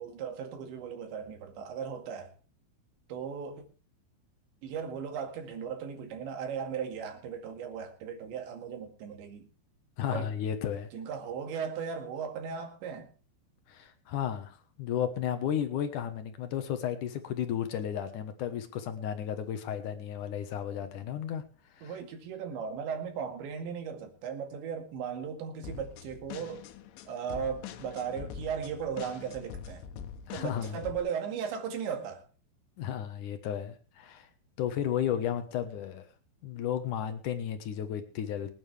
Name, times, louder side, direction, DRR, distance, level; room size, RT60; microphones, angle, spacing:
voice 1, 0.0-2.3 3.1-3.6 4.6-9.5 10.1-10.3 10.9-13.1 21.8-26.6 27.1-29.9 30.3-32.2, right 7 dB, 75° right, 4.4 m, -37 dB
voice 2, 10.0-10.9 13.7-21.4 21.8-22.0 30.3-30.8 32.8-34.3 34.6-36.0 36.4-38.5, left 9 dB, 70° left, 1.9 m, -33 dB
sound 1, 25.6-31.0, left 8 dB, 85° left, 3.5 m, -44 dB
24.0 x 9.5 x 3.4 m
omnidirectional pair, 5.4 m